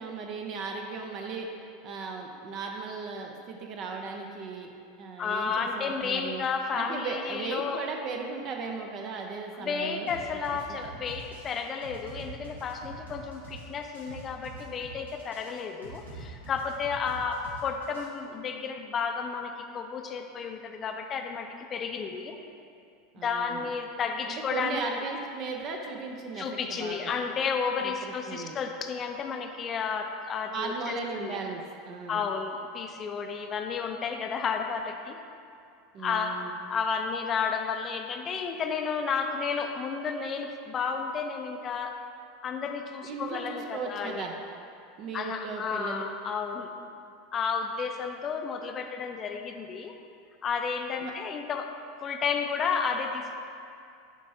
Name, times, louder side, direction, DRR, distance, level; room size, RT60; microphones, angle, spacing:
voice 1, 0.0-1.5 1.8-4.7 5.0-6.4 6.7-10.1 10.7-10.8 23.1-23.7 24.3-27.1 27.8-28.6 30.5-32.3 35.9-36.5 43.0-44.3 45.0-46.1 51.0-51.1, right 4 dB, 40° right, 2 dB, 0.6 m, -36 dB
voice 2, 5.2-7.8 9.6-22.4 23.2-24.8 26.4-31.4 32.1-35.2 36.0-42.0 42.4-44.3 45.1-46.7 47.3-49.9 50.4-51.7 52.0-53.4, left 5 dB, 30° left, 5 dB, 0.5 m, -32 dB
sound 1, 10.1-18.1, right 3 dB, 75° right, 1.1 m, -45 dB
7.3 x 5.3 x 2.8 m, 2.5 s
figure-of-eight pair, 80°, 0 cm